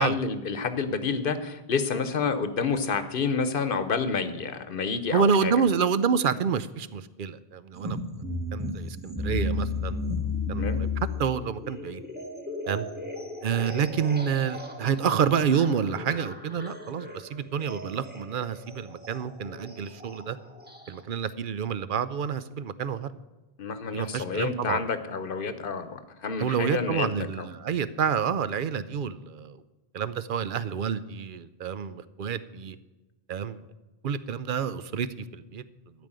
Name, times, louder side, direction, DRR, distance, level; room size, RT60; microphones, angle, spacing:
voice 1, 0.0-5.5 10.6-10.8 23.6-27.1 27.4-27.5, left 5 dB, 60° left, 11 dB, 1.1 m, -29 dB
voice 2, 5.1-8.0 8.5-10.1 10.5-10.9 11.2-12.0 12.7-12.9 13.4-20.4 20.9-23.1 23.9-24.8 26.4-29.6 29.9-32.8 33.3-33.6 34.0-35.1 35.3-35.6, right 7 dB, 60° right, 14 dB, 0.7 m, -28 dB
sound 1, 7.7-21.0, left 2 dB, 10° right, 1.3 m, -35 dB
12.5 x 5.2 x 8.8 m, 1.1 s
omnidirectional pair, 1.0 m